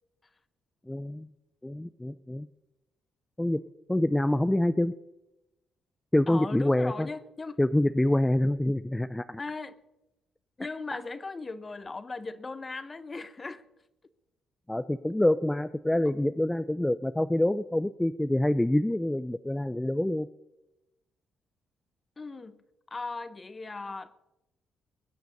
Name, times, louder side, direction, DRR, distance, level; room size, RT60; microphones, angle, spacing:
voice 1, 0.9-1.3 1.6-2.5 3.4-3.6 3.9-4.9 6.1-7.1 7.6-9.4 14.7-20.3, left 1 dB, 10° left, 0.5 m, -26 dB
voice 2, 6.3-7.6 9.4-9.8 10.6-13.6 22.2-22.6 22.9-24.2, left 3 dB, 25° left, 1.1 m, -38 dB
21.0 x 8.0 x 6.7 m
cardioid pair, 90°, 0 cm